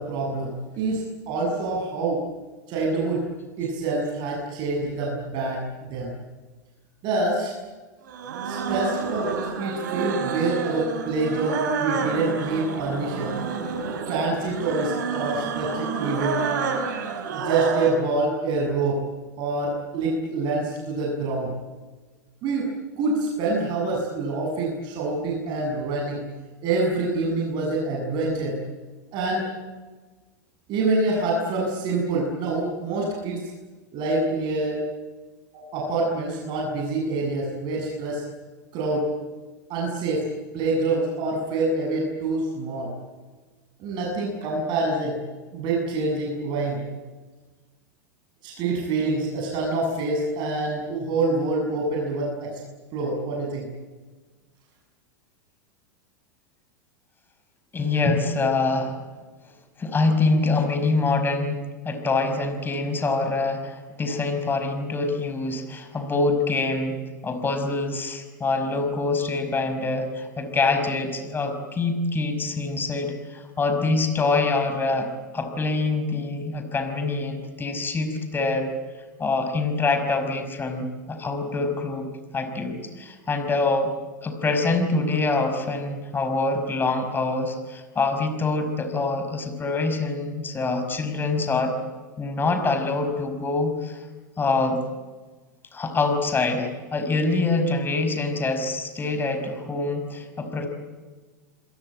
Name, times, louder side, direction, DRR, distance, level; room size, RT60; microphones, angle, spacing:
voice 1, 0.0-2.2 2.7-3.2 3.6-6.1 7.0-7.5 8.4-13.3 14.1-16.4 17.3-19.0 19.4-21.5 22.4-22.7 23.0-26.2 26.6-28.6 29.1-29.5 30.7-33.4 33.9-34.8 35.5-38.2 38.7-39.1 39.7-40.2 40.5-42.9 43.8-45.2 45.5-46.8 48.4-52.6 52.9-53.7, right 2 dB, 45° right, -1 dB, 7.3 m, -26 dB
sound 1, 8.1-18.0, right 5 dB, 70° right, 5.2 m, -29 dB
voice 2, 57.7-59.0 59.8-78.7 79.2-83.9 84.2-91.7 92.2-94.0 94.4-94.8 95.7-100.7, left 3 dB, 20° left, 8 dB, 5.4 m, -25 dB
27.5 x 22.5 x 8.9 m, 1.3 s
hypercardioid pair, 105°, 10 cm